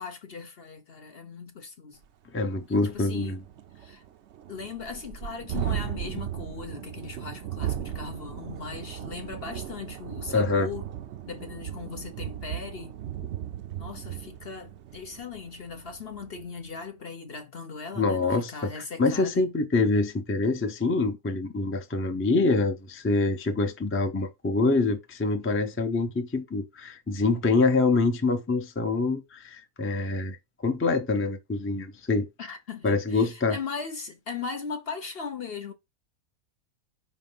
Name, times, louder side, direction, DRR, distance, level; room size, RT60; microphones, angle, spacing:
voice 1, 0.0-2.0 2.7-3.4 3.8-4.0 4.5-10.9 11.3-12.9 13.8-19.4 32.4-35.7, left 5 dB, 50° left, 0.9 m, -38 dB
Thunderstorm, 2.0-2.1 2.5-2.6 2.9-16.5, right 10 dB, 60° right, 0.8 m, -37 dB
voice 2, 2.3-3.4 10.3-10.7 18.0-30.4 30.6-32.3 32.8-33.6, left 3 dB, 15° left, 0.6 m, -25 dB
5.2 x 3.9 x 5.5 m
omnidirectional pair, 1.5 m